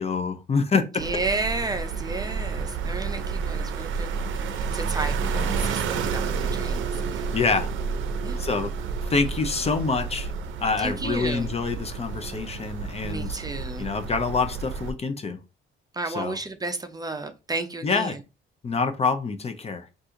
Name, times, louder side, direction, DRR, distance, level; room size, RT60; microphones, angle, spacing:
voice 1, 0.0-0.8 5.3-5.5 7.3-7.7 8.4-8.7 9.1-10.3 10.6-13.4 13.8-15.4 16.1-16.4 17.8-18.2 18.6-19.9, left 4 dB, 30° left, 0.5 m, -26 dB
voice 2, 1.0-4.3 4.7-7.3 8.2-8.4 10.8-11.5 13.0-13.9 15.9-18.2, right 3 dB, 20° right, 0.5 m, -32 dB
sound 1, 1.0-14.9, right 5 dB, 75° right, 0.5 m, -30 dB
2.7 x 2.4 x 3.7 m
cardioid pair, 90°, 20 cm